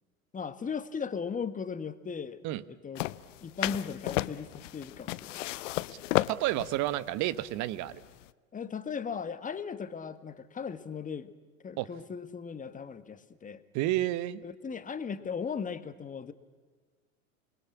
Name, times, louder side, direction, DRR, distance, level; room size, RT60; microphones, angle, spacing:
voice 1, 0.3-2.4 2.7-3.1 3.4-5.4 8.5-11.3 11.6-13.6 14.4-16.3, left 6 dB, 20° left, 12 dB, 1.6 m, -37 dB
sound 1, 3.0-8.3, left 17 dB, 60° left, 0.9 m, -33 dB
voice 2, 6.3-8.0 11.8-11.9 13.7-14.4, right 15 dB, 45° right, 17 dB, 1.3 m, -30 dB
28.5 x 21.0 x 8.5 m, 1.4 s
hypercardioid pair, 95°, 42 cm